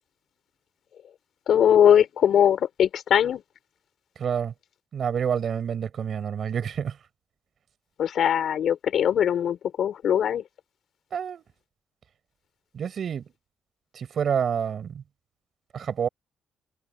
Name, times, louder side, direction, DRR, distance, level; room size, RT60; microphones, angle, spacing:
voice 1, 1.5-3.4 8.0-10.4, left 9 dB, 65° left, 5.0 m, -21 dB
voice 2, 4.2-4.5 4.9-7.0 11.1-11.4 12.7-13.2 13.9-15.0 15.7-16.1, right 7 dB, 55° right, 6.5 m, -28 dB
cardioid pair, 90°, 0 cm